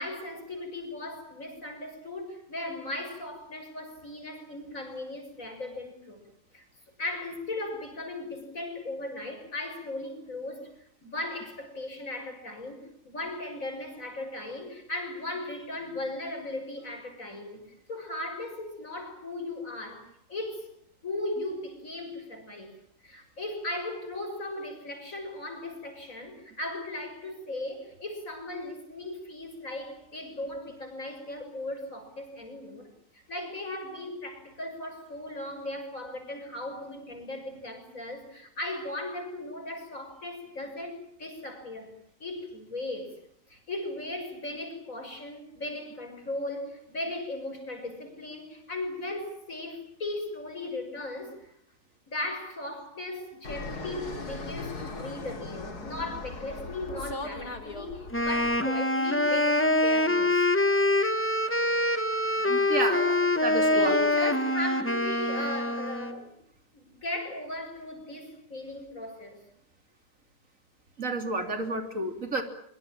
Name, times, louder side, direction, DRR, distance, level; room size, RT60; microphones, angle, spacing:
voice 1, 0.0-6.2 6.5-6.6 7.0-10.7 11.0-17.6 17.9-20.7 21.0-22.7 23.0-32.9 33.1-41.9 42.2-43.2 43.5-51.5 52.1-60.3 62.5-66.4 66.7-69.4, left 1 dB, 55° left, 5 dB, 6.7 m, -37 dB
Fixed-wing aircraft airplane, 53.4-58.6, left 3 dB, 90° left, 3.3 m, -39 dB
Wind instrument woodwind instrument, 58.1-66.2, left 1 dB, 10° left, 1.4 m, -25 dB
voice 2, 62.5-63.0 63.4-64.0 71.0-72.4, right 2 dB, 55° right, 6 dB, 3.5 m, -30 dB
24.0 x 24.0 x 8.9 m, 0.66 s
omnidirectional pair, 1.6 m